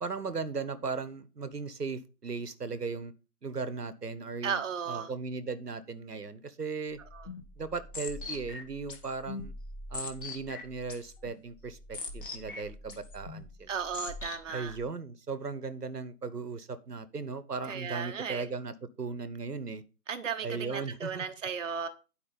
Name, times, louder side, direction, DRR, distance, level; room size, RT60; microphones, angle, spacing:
voice 1, 0.0-3.1 3.4-4.6 4.9-7.0 7.6-9.5 9.9-13.7 14.5-19.8 20.4-21.3, right 4 dB, 80° right, 1.1 m, -37 dB
voice 2, 4.4-5.1 7.1-7.3 13.7-14.8 17.7-18.4 20.1-21.9, right 6 dB, 50° right, 0.8 m, -35 dB
sound 1, 6.9-14.8, left 3 dB, 35° left, 1.4 m, -43 dB
9.8 x 4.8 x 5.2 m
figure-of-eight pair, 145°, 47 cm